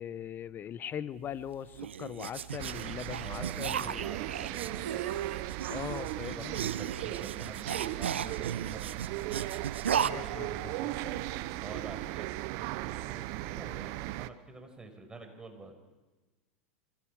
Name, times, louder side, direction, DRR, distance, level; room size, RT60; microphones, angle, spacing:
voice 1, 0.0-4.1 5.7-6.6 9.8-11.2, left 9 dB, 30° left, 16 dB, 1.2 m, -41 dB
sound 1, 1.3-10.1, right 8 dB, 80° right, 0.7 m, -36 dB
sound 2, 2.6-14.3, right 17 dB, 55° right, 0.9 m, -37 dB
voice 2, 3.2-9.5 9.9-11.2 11.6-15.7, right 3 dB, 15° right, 4 dB, 5.9 m, -48 dB
30.0 x 25.0 x 5.0 m, 1.2 s
hypercardioid pair, 90°, 6 cm